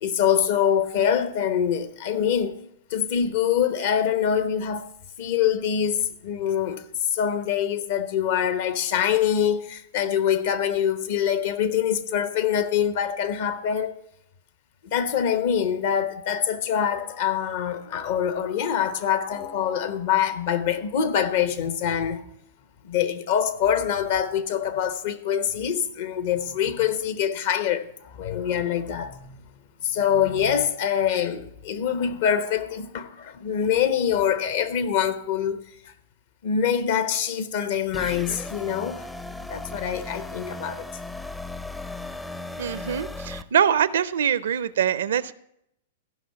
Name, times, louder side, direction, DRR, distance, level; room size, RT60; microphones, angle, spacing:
voice 1, 0.0-2.6 2.9-4.9 5.2-6.8 7.1-13.9 14.8-22.2 22.8-29.4 29.8-35.6 35.8-35.9 36.4-39.1 39.5-41.0, left 8 dB, 60° left, 0.9 m, -24 dB
sound 1, 16.8-22.3, left 7 dB, 45° left, 1.2 m, -45 dB
sound 2, 37.9-43.4, left 2 dB, 5° left, 0.5 m, -36 dB
voice 2, 42.6-45.3, right 8 dB, 75° right, 0.5 m, -23 dB
14.5 x 5.6 x 5.8 m
hypercardioid pair, 110°, 0 cm